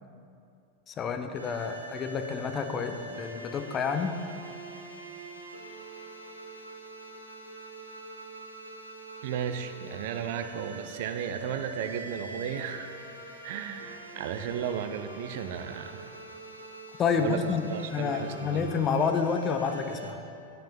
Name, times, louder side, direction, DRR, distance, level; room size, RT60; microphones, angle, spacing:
voice 1, 0.9-4.1 17.0-20.2, left 6 dB, 25° left, 7 dB, 0.6 m, -29 dB
sound 1, 1.3-20.1, right 2 dB, 85° right, 1.0 m, -44 dB
voice 2, 9.2-12.9 13.4-16.2 17.2-18.7, right 8 dB, 50° right, 9 dB, 0.5 m, -34 dB
8.7 x 5.8 x 5.3 m, 2.5 s
figure-of-eight pair, 90°, 0 cm